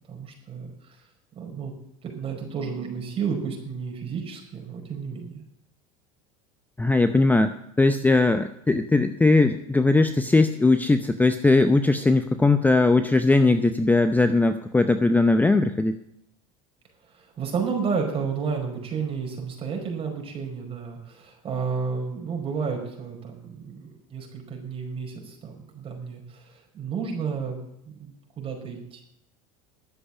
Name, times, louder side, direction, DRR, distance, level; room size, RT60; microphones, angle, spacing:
voice 1, 0.1-1.0 1.3-1.7 2.0-5.4 17.1-27.6 27.9-29.0, right 5 dB, 35° right, 1 dB, 5.0 m, -32 dB
voice 2, 6.8-16.0, left 3 dB, 10° left, 10 dB, 0.7 m, -20 dB
12.0 x 7.9 x 7.2 m, 0.76 s
supercardioid pair, 100°, 17 cm